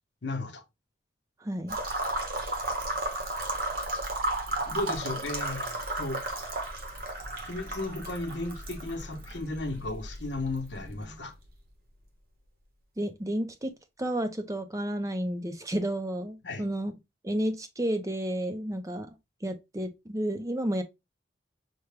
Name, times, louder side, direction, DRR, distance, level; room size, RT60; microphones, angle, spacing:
voice 1, 0.2-0.6 4.7-6.5 7.4-11.3 16.4-16.7, left 2 dB, 75° left, 0.9 m, -35 dB
voice 2, 1.4-1.8 13.0-13.7 14.0-16.9 17.2-19.2 19.4-20.8, right 1 dB, 20° right, 0.5 m, -31 dB
sound 1, 1.7-11.5, right 1 dB, 50° right, 0.9 m, -34 dB
5.8 x 2.2 x 3.3 m
head